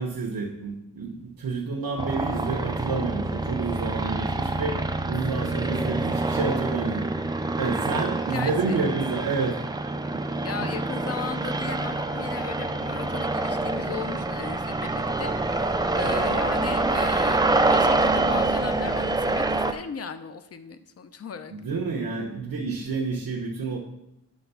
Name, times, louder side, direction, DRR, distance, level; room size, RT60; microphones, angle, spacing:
voice 1, 0.0-7.1 7.6-9.6 10.1-10.2 16.2-16.3 21.5-23.8, right 4 dB, 90° right, -4 dB, 1.1 m, -29 dB
sound 1, 2.0-19.7, right 2 dB, 10° right, 0.4 m, -26 dB
voice 2, 5.6-6.4 8.2-8.8 10.4-21.5, left 6 dB, 45° left, 10 dB, 0.6 m, -37 dB
9.4 x 3.5 x 6.8 m, 0.84 s
wide cardioid pair, 170°, 34 cm